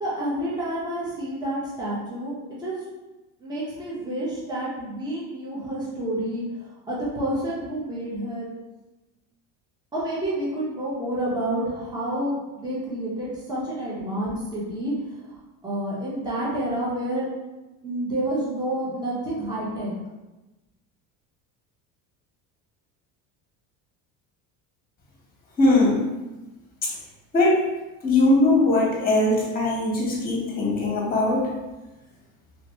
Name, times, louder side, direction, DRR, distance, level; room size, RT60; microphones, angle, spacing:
voice 1, 0.0-2.8 3.4-6.4 6.9-8.5 9.9-14.9 15.2-15.4 15.6-17.2 17.8-19.9, right 1 dB, 10° right, -7 dB, 1.0 m, -29 dB
voice 2, 25.6-26.0 26.8-26.9 27.3-27.6 28.0-31.5, left 2 dB, 20° left, -3 dB, 1.2 m, -20 dB
3.2 x 3.0 x 3.0 m, 1.1 s
cardioid pair, 125°, 40 cm